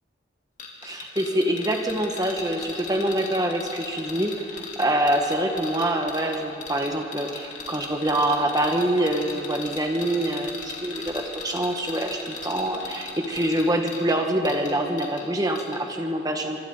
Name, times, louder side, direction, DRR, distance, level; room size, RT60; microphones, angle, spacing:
sound 1, 0.6-15.3 15.6-15.8, left 4 dB, 40° left, 2.7 m, -38 dB
voice 1, 0.8-16.6, right 1 dB, 20° right, 3 dB, 1.6 m, -25 dB
25.5 x 25.0 x 4.0 m, 2.6 s
head